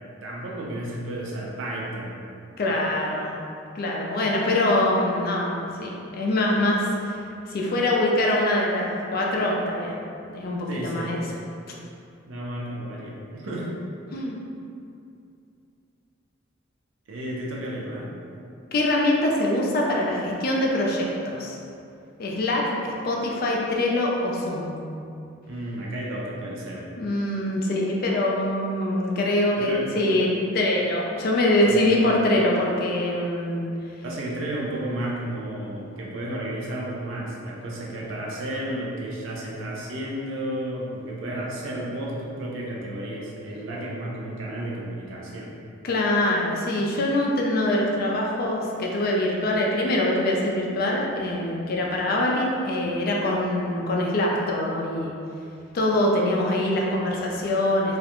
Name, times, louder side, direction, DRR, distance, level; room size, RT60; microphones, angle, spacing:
voice 1, 0.2-2.2 10.7-11.1 12.3-13.7 17.1-18.1 25.5-26.8 29.6-29.9 31.7-32.0 34.0-45.5, right 1 dB, 75° right, -4 dB, 0.5 m, -32 dB
voice 2, 2.6-3.3 3.8-7.2 7.5-9.9 10.3-11.2 14.1-14.4 18.7-21.6 22.2-24.8 27.0-30.3 30.5-33.6 45.8-55.1 55.7-58.0, left 1 dB, 50° left, -2 dB, 0.3 m, -24 dB
2.3 x 2.1 x 2.9 m, 2.5 s
head